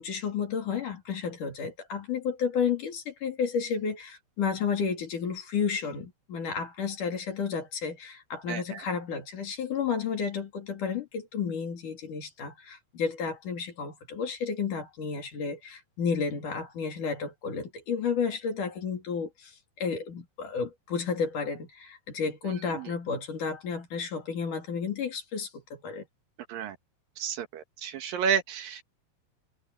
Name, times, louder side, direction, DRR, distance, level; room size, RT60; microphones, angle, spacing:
voice 1, 0.0-26.0, left 6 dB, 55° left, 4.4 m, -32 dB
voice 2, 8.5-8.8 22.7-22.9 26.5-26.8 27.2-28.8, right 7 dB, 70° right, 2.9 m, -31 dB
omnidirectional pair, 4.5 m